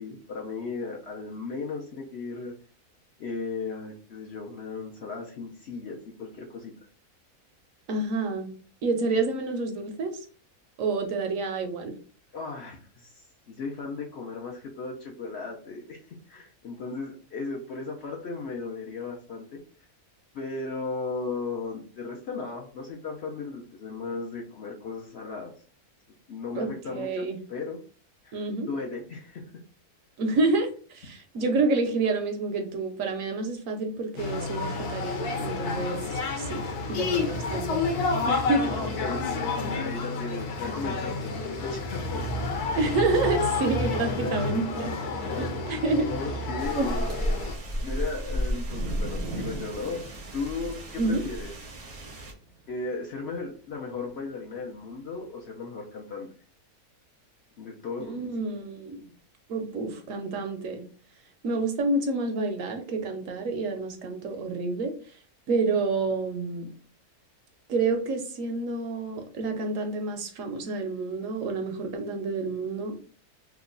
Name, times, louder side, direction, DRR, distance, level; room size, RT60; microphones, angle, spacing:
voice 1, 0.0-2.5 3.2-6.7 12.3-19.6 20.3-25.5 26.3-27.8 28.2-29.5 38.7-42.2 44.2-44.4 45.9-47.1 47.8-50.0 50.3-51.5 52.7-56.3 57.6-58.3, left 4 dB, 60° left, -1 dB, 0.7 m, -36 dB
voice 2, 7.9-8.5 8.8-10.3 10.8-11.9 26.5-27.4 28.3-28.7 30.2-36.6 36.9-38.6 42.7-46.1 46.7-47.3 51.0-51.2 58.0-59.1 59.5-60.8 61.4-64.9 65.5-66.7 67.7-73.0, right 3 dB, 70° right, 6 dB, 0.9 m, -29 dB
sound 1, 34.2-47.5, left 3 dB, 85° left, 1.2 m, -30 dB
sound 2, 46.6-52.3, equal, 50° right, 0.4 m, -33 dB
sound 3, 47.7-54.2 55.1-55.2, right 3 dB, 85° right, 1.1 m, -42 dB
2.9 x 2.2 x 3.7 m, 0.40 s
omnidirectional pair, 1.6 m